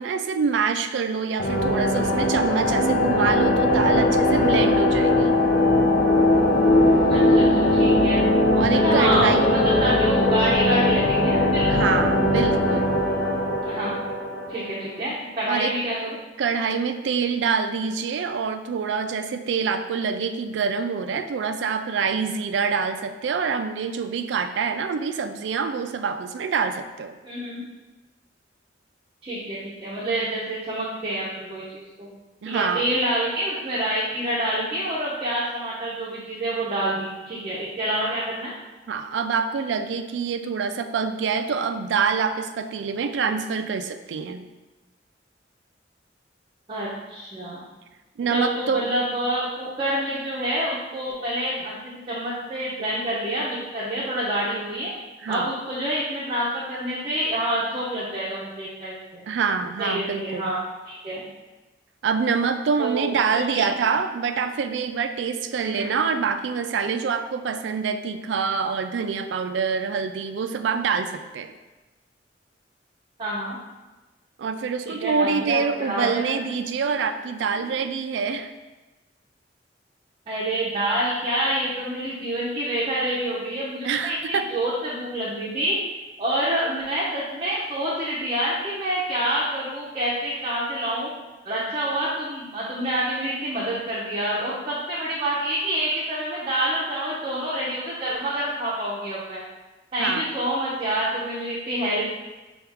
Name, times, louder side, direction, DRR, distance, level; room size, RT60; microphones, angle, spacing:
voice 1, 0.0-5.4 8.5-9.5 11.7-13.0 15.5-15.7 16.4-27.2 32.4-32.9 38.9-44.4 48.2-48.9 55.2-55.5 59.3-60.5 62.0-71.5 74.4-78.5 83.8-84.5 100.0-100.3, right 5 dB, 80° right, 9 dB, 0.3 m, -26 dB
sound 1, 1.4-15.0, left 1 dB, 55° left, 0.5 m, -20 dB
voice 2, 7.1-8.2 8.8-11.7 13.6-14.0 14.5-16.2 27.2-27.6 29.2-32.1 32.5-38.5 46.7-47.7 48.3-54.9 55.3-59.2 59.8-61.3 62.8-63.7 65.6-65.9 73.2-73.6 74.8-76.3 80.3-84.2 84.5-85.8 86.2-91.1 91.4-99.4 99.9-102.1, right 1 dB, 30° right, -7 dB, 0.6 m, -27 dB
5.7 x 2.3 x 3.4 m, 1.2 s
head